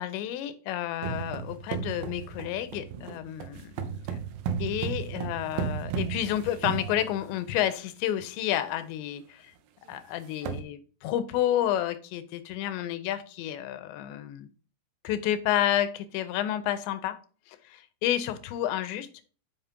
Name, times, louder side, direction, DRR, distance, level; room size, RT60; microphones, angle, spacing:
voice 1, 0.0-4.2 4.6-9.5 9.9-14.5 15.0-17.2 17.5-19.1, left 12 dB, 90° left, 3.0 m, -30 dB
sound 1, 1.0-7.5 8.2-8.3 8.6-8.8 9.2-9.3 9.9-10.0 10.2-10.6, right 7 dB, 75° right, 2.4 m, -34 dB
6.9 x 5.6 x 3.6 m
omnidirectional pair, 5.0 m